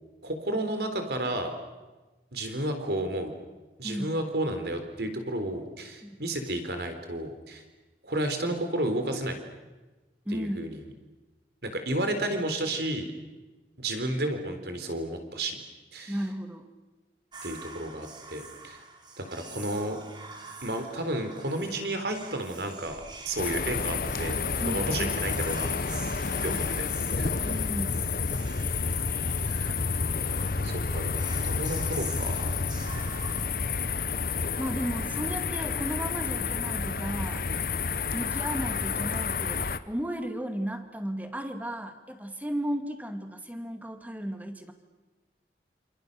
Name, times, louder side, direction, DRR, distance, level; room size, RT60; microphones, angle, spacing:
voice 1, 0.2-1.5 2.3-3.3 3.8-7.6 8.0-9.4 10.3-10.8 11.6-13.1 13.8-15.6 15.9-16.2 17.4-18.8 19.2-20.0 20.6-25.7 26.4-26.9 27.2-27.5 28.9-29.0 29.4-29.8 30.3-32.7, right 1 dB, 70° right, 7 dB, 3.9 m, -32 dB
voice 2, 3.8-4.2 6.0-6.2 10.3-10.7 16.1-16.7 24.6-25.2 27.4-27.9 30.4-30.5 34.6-37.5 38.1-44.7, equal, 10° right, 7 dB, 2.1 m, -34 dB
Whispering, 17.3-34.4, right 3 dB, 25° right, 3.1 m, -47 dB
sound 1, 23.4-39.8, left 5 dB, 50° left, 1.0 m, -30 dB
28.5 x 28.5 x 6.8 m, 1.2 s
head